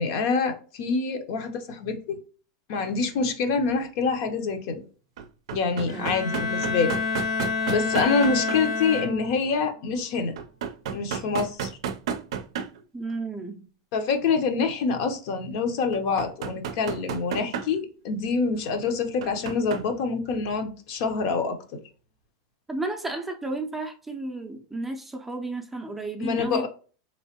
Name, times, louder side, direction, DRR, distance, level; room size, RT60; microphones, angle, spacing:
voice 1, 0.0-2.2 2.7-4.8 5.5-7.0 7.7-10.3 10.9-11.7 13.9-21.6 26.2-26.7, left 4 dB, 60° left, 0.8 m, -26 dB
sound 1, 3.1-3.2 5.2-8.6 10.4-12.8 13.1-13.2 15.9-17.8 19.2-19.9 20.5-20.6, right 7 dB, 75° right, 0.5 m, -32 dB
Bowed string instrument, 5.9-9.5, left 5 dB, 80° left, 1.7 m, -28 dB
voice 2, 12.9-13.7 22.7-26.7, right 2 dB, 5° right, 0.5 m, -33 dB
3.6 x 3.1 x 2.9 m
supercardioid pair, 140°, 3 cm